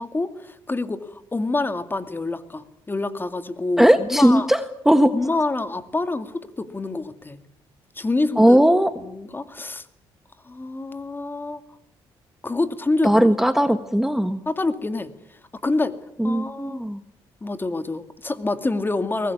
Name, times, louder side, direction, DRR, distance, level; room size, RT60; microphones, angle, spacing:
voice 1, 0.0-4.5 5.1-7.4 8.0-8.7 9.0-9.9 10.4-11.6 12.4-13.3 14.5-15.1 15.6-16.0 16.2-16.8 17.4-19.3, left 2 dB, 20° left, 11 dB, 2.2 m, -27 dB
voice 2, 3.8-5.1 8.4-8.9 13.0-14.4 16.2-17.0, equal, 5° right, 10 dB, 1.4 m, -18 dB
23.0 x 19.5 x 9.5 m, 0.73 s
cardioid pair, 85°, 10 cm